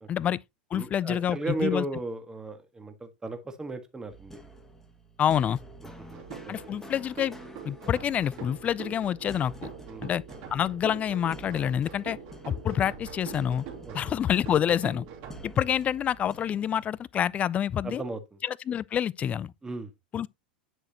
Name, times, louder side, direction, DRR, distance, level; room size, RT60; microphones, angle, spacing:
voice 1, 0.1-0.4 0.7-1.8 5.2-5.6 6.5-7.3 7.6-9.7 10.0-10.2 10.5-12.2 12.4-13.6 13.9-15.1 15.4-18.0 18.4-19.5 20.1-20.3, left 9 dB, 25° left, 0.4 m, -27 dB
voice 2, 0.7-4.4 6.1-6.6 9.9-10.1 13.8-14.1 17.8-18.4 19.6-19.9, right 3 dB, 15° right, 1.7 m, -35 dB
sound 1, 4.1-17.0, right 1 dB, 5° left, 1.8 m, -49 dB
sound 2, 6.1-15.4, right 6 dB, 50° right, 3.2 m, -44 dB
10.0 x 6.4 x 2.9 m
figure-of-eight pair, 85°, 5 cm